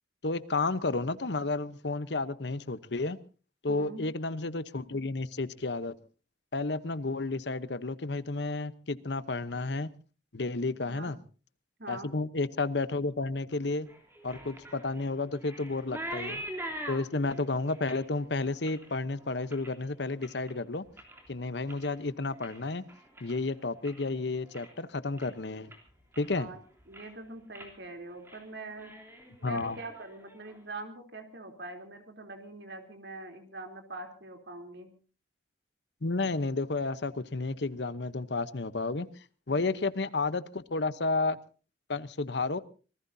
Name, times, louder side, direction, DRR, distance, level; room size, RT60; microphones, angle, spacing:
voice 1, 0.2-3.2 3.6-5.9 6.5-9.9 10.3-11.2 11.9-13.9 14.2-16.4 16.9-20.8 21.3-22.8 23.2-25.7 26.2-26.5 29.4-29.8 36.0-39.1 39.5-41.4 41.9-42.6, left 3 dB, 75° left, 15 dB, 0.9 m, -31 dB
voice 2, 3.7-4.0 10.8-11.1 11.8-12.1 26.2-26.6 26.9-34.9 39.5-39.9, right 2 dB, 70° right, 5 dB, 3.4 m, -44 dB
sound 1, 13.9-20.5 20.9-21.3 21.6-24.1 24.4-24.8 25.2-25.3 25.7-26.5 26.8-27.2 27.5-27.7 28.1-28.4 28.7-30.6, right 1 dB, 15° right, 3.2 m, -44 dB
26.0 x 19.5 x 2.7 m, 0.36 s
head